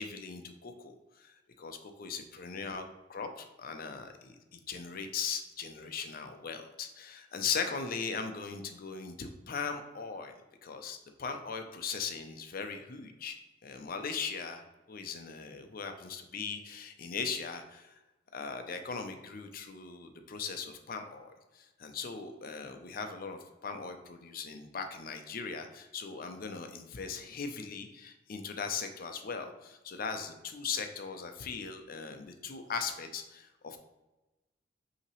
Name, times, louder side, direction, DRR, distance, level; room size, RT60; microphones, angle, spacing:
voice 1, 0.0-17.9 18.3-33.8, left 5 dB, 50° left, 6 dB, 0.5 m, -39 dB
5.6 x 2.9 x 3.0 m, 1.1 s
head